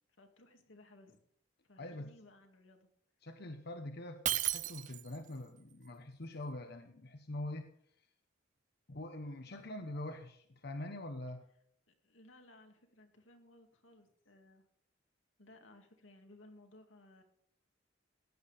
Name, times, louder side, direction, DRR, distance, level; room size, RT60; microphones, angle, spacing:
voice 1, 0.2-1.2 1.6-2.9 11.9-14.6 15.4-17.2, left 1 dB, 85° left, 4 dB, 2.4 m, -60 dB
voice 2, 1.8-2.1 3.2-7.7 8.0-8.1 8.9-11.5, left 1 dB, 55° left, 6 dB, 1.0 m, -44 dB
Shatter, 4.3-5.3, right 13 dB, 40° right, 0.5 m, -34 dB
15.5 x 10.5 x 5.1 m, 0.69 s
head